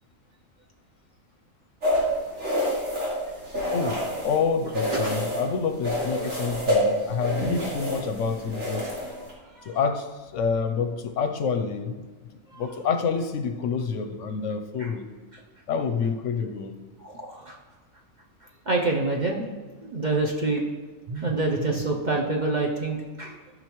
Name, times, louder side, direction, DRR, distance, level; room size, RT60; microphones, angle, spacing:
sound 1, 1.8-4.4 4.7-5.5 5.8-9.3, equal, 70° right, 2.8 m, -27 dB
voice 1, 3.7-8.9 9.6-12.1 12.6-15.1 15.7-16.7, left 5 dB, 65° left, 6 dB, 0.9 m, -28 dB
voice 2, 17.0-17.6 18.7-19.4 19.8-20.6 21.1-23.4, right 2 dB, 45° right, 0 dB, 0.6 m, -27 dB
13.5 x 5.5 x 3.0 m, 1.3 s
omnidirectional pair, 1.4 m